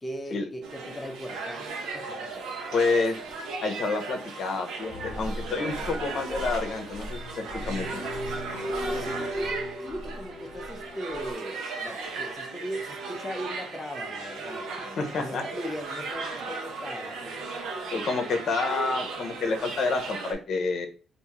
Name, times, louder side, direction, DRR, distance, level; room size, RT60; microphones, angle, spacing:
voice 1, 0.0-2.6 8.9-17.5, equal, 15° left, 0.5 m, -39 dB
sound 1, 0.6-20.3, right 3 dB, 85° right, 0.8 m, -37 dB
voice 2, 2.7-3.2 3.6-8.0 15.0-15.4 17.9-20.9, left 3 dB, 65° left, 0.7 m, -28 dB
sound 2, 4.9-11.3, equal, 30° left, 1.0 m, -36 dB
3.5 x 2.6 x 3.0 m
cardioid pair, 90°, 0 cm